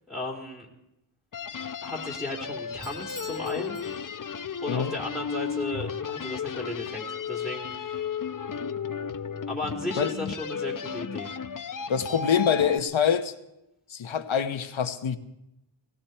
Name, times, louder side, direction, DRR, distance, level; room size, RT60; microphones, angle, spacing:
voice 1, 0.1-0.7 1.8-3.8 4.6-8.0 9.5-11.3, left 2 dB, ahead, -2 dB, 2.7 m, -35 dB
sound 1, 1.3-12.8, left 6 dB, 40° left, 0.7 m, -34 dB
Bell / Doorbell, 2.8-4.5, equal, 15° left, 2.0 m, -47 dB
voice 2, 11.9-13.3 13.9-15.2, left 7 dB, 70° left, 9 dB, 1.1 m, -25 dB
17.5 x 17.5 x 4.4 m, 0.88 s
wide cardioid pair, 80°, 48 cm